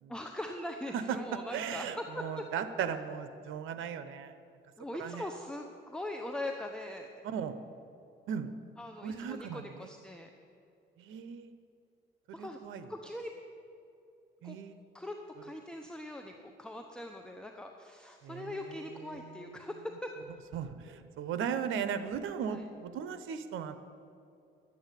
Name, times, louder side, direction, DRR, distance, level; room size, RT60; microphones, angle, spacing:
voice 1, 0.1-2.5 4.8-7.1 8.8-10.3 12.3-12.6 12.9-13.3 14.4-14.6 14.9-20.1 22.5-22.6, left 1 dB, 5° left, 3 dB, 0.9 m, -41 dB
voice 2, 1.5-4.3 5.0-5.3 7.2-7.5 8.3-8.5 9.0-9.9 11.0-11.5 12.4-12.9 14.4-14.8 18.2-19.4 20.5-23.7, right 7 dB, 85° right, 11 dB, 0.9 m, -37 dB
12.0 x 8.6 x 8.3 m, 2.6 s
cardioid pair, 90°, 20 cm